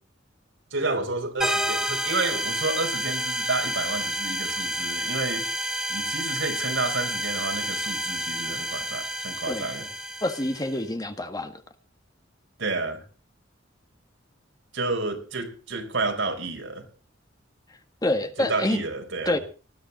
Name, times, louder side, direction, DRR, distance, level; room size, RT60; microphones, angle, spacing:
voice 1, 0.7-5.5 5.9-9.9 12.6-13.0 14.7-16.8 18.4-19.4, right 3 dB, 75° right, 4.3 m, -30 dB
sound 1, 1.4-10.8, equal, 5° right, 2.5 m, -29 dB
voice 2, 9.5-9.9 10.2-11.6 18.0-18.8 19.2-19.4, left 1 dB, 20° left, 1.6 m, -27 dB
19.5 x 13.5 x 4.1 m
head